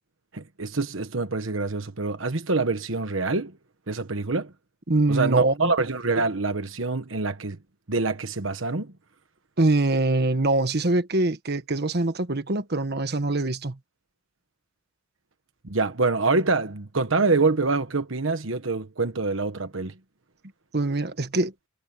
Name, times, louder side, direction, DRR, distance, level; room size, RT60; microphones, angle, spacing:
voice 1, 0.3-3.6 3.9-4.5 5.1-7.6 7.9-8.9 15.6-19.9, right 3 dB, 70° right, 1.3 m, -25 dB
voice 2, 4.9-5.7 9.6-13.8 20.7-21.5, right 2 dB, 55° right, 1.4 m, -23 dB
head